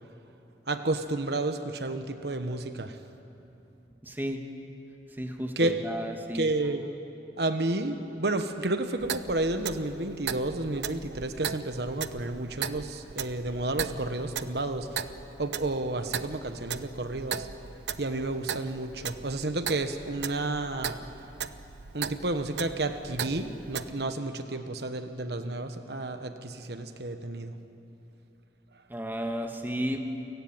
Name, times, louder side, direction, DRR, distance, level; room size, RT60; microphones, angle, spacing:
voice 1, 0.7-3.0 5.6-5.7 6.3-6.9 7.4-15.0 15.4-17.5 18.0-21.0 21.9-27.6, right 2 dB, 70° right, 8 dB, 1.2 m, -31 dB
voice 2, 4.0-4.4 5.1-6.5 28.9-30.0, equal, 10° right, 4 dB, 1.6 m, -33 dB
Clock, 9.0-23.9, right 7 dB, 85° right, 0.8 m, -38 dB
29.0 x 17.5 x 9.0 m, 2.9 s
head